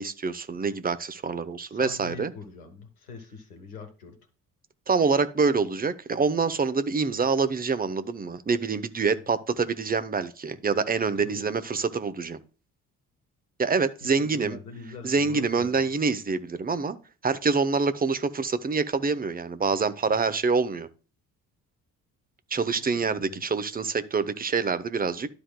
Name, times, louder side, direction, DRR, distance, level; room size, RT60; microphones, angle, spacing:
voice 1, 0.0-2.3 4.9-12.4 13.6-14.6 15.0-17.0 17.2-20.9 22.5-25.3, right 4 dB, 20° right, 0.8 m, -26 dB
voice 2, 1.7-4.2 11.1-11.5 14.0-15.9 22.6-23.4, left 4 dB, 90° left, 1.3 m, -43 dB
12.0 x 4.9 x 2.2 m
hypercardioid pair, 45°, 44 cm